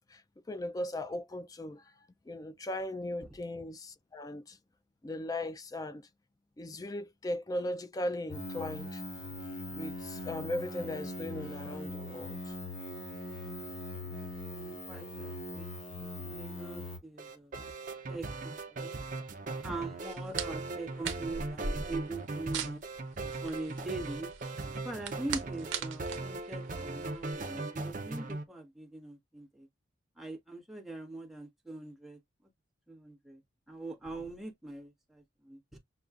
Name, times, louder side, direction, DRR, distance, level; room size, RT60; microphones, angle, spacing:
voice 1, 0.5-1.9 2.3-4.6 5.0-6.1 6.6-9.0 9.7-12.5 14.9-15.0 19.7-19.8, left 1 dB, 20° left, 0.3 m, -38 dB
sound 1, 8.3-17.0, left 1 dB, 70° left, 1.5 m, -41 dB
voice 2, 14.4-15.7 16.0-17.6 18.1-19.0 19.6-22.8 23.4-24.3 24.7-29.7 30.2-32.2 32.9-33.4 33.7-35.8, right 2 dB, ahead, 1.1 m, -42 dB
sound 2, 17.2-28.4, right 3 dB, 45° right, 0.6 m, -39 dB
sound 3, 20.0-27.3, right 6 dB, 80° right, 0.7 m, -41 dB
6.8 x 2.3 x 2.4 m
head